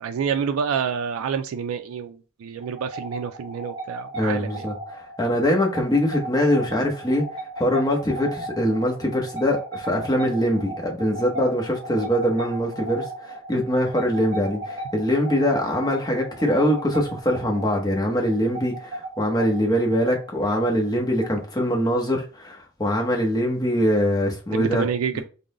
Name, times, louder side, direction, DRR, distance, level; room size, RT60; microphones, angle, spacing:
voice 1, 0.0-4.7 24.5-25.2, right 7 dB, 85° right, 0.3 m, -28 dB
sound 1, 2.6-22.0, right 1 dB, 25° right, 1.3 m, -36 dB
voice 2, 4.1-7.2 7.6-24.9 25.1-25.2, equal, 20° left, 0.8 m, -23 dB
3.7 x 2.0 x 3.6 m
head